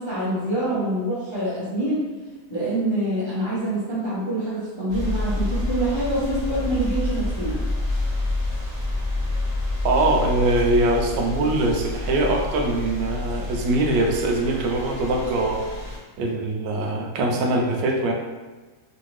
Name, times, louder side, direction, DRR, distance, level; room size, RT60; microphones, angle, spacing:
voice 1, 0.0-2.1 2.5-7.6, right 1 dB, 30° left, -10 dB, 0.5 m, -25 dB
sound 1, 4.9-16.0, left 2 dB, 30° right, 0.7 m, -28 dB
voice 2, 9.8-15.6 16.2-18.1, right 2 dB, 80° right, 1 dB, 1.2 m, -22 dB
3.2 x 2.7 x 3.1 m, 1.3 s
omnidirectional pair, 1.9 m